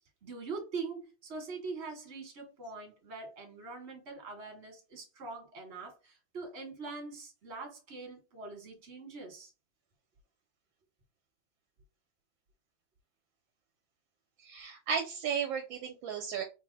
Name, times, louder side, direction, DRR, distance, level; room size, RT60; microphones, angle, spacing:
voice 1, 0.2-9.5, right 4 dB, 35° right, 1.3 m, -43 dB
voice 2, 14.4-16.4, right 7 dB, 75° right, 1.2 m, -34 dB
3.6 x 2.0 x 3.8 m
omnidirectional pair, 2.2 m